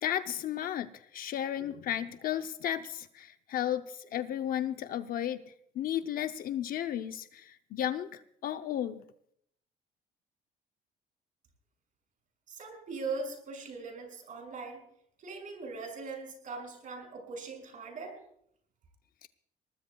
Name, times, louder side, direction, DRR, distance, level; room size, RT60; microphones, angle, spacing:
voice 1, 0.0-5.4 5.7-9.0 19.2-19.3, left 11 dB, 60° left, 9 dB, 0.7 m, -34 dB
voice 2, 12.5-14.8 15.2-18.2, right 4 dB, 50° right, 2 dB, 6.4 m, -40 dB
23.0 x 19.0 x 2.3 m, 0.69 s
cardioid pair, 110°, 17 cm